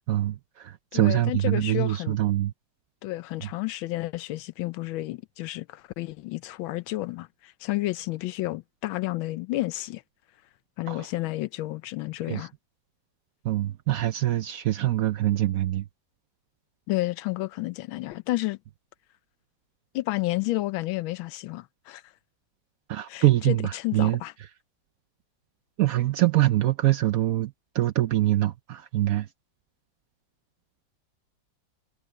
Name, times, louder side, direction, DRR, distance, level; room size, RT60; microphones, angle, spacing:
voice 1, 0.1-2.5 10.9-11.1 12.3-12.5 13.4-15.8 22.9-24.2 25.8-29.3, right 14 dB, 80° right, 0.7 m, -24 dB
voice 2, 0.9-2.2 3.0-10.0 10.8-12.5 16.9-18.6 19.9-22.0 23.1-24.3, left 18 dB, 90° left, 1.4 m, -31 dB
omnidirectional pair, 2.1 m